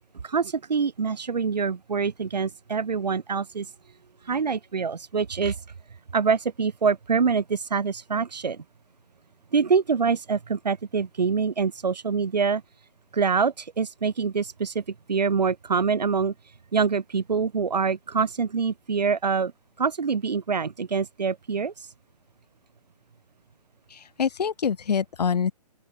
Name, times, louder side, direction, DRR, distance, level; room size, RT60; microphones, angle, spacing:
voice 1, 0.2-3.7 4.2-5.6 6.1-8.6 9.5-12.6 13.1-14.8 15.1-16.3 16.7-19.5 19.8-21.9, right 5 dB, 85° right, 3.8 m, -25 dB
voice 2, 23.9-25.5, left 7 dB, 80° left, 1.5 m, -25 dB
open air
hypercardioid pair, 145°, 21 cm